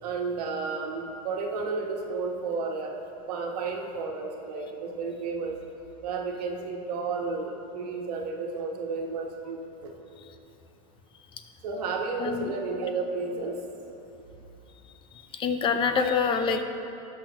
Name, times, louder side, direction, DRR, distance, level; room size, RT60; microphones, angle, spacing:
voice 1, 0.0-2.9 3.3-5.6 6.0-9.9 11.6-13.6 16.0-16.1, right 4 dB, 80° right, 1 dB, 1.4 m, -32 dB
voice 2, 12.2-12.5 15.4-16.6, left 5 dB, 25° left, 7 dB, 0.7 m, -25 dB
17.0 x 6.1 x 3.0 m, 2.8 s
supercardioid pair, 135°, 20 cm